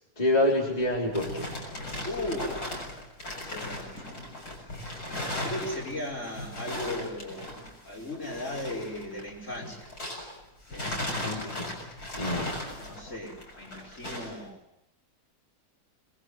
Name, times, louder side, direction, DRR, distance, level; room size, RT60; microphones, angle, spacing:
voice 1, 0.2-1.6 11.2-11.7 12.2-12.5, left 1 dB, 20° left, -3 dB, 4.1 m, -27 dB
sound 1, 0.7-10.4 10.7-14.4, left 1 dB, 60° left, 7.4 m, -37 dB
voice 2, 2.0-2.6 3.5-3.9 5.4-7.5 7.8-9.9 10.7-11.2 12.5-14.6, left 1 dB, 45° left, -1 dB, 6.2 m, -37 dB
26.5 x 21.5 x 7.9 m, 0.81 s
omnidirectional pair, 1.8 m